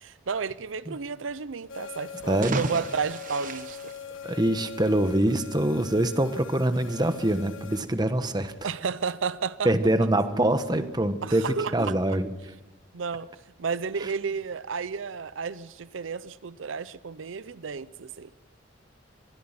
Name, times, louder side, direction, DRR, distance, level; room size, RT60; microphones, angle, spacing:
voice 1, 0.0-3.8 8.6-9.7 11.2-12.0 12.9-13.3 13.6-18.3, right 5 dB, 90° right, 0.6 m, -32 dB
sound 1, 1.7-7.8, left 7 dB, 90° left, 1.6 m, -42 dB
sound 2, 2.2-4.8, right 4 dB, 45° right, 1.0 m, -36 dB
voice 2, 2.3-2.6 4.2-8.5 9.6-12.3, right 1 dB, 20° right, 1.2 m, -24 dB
25.0 x 20.0 x 5.9 m
head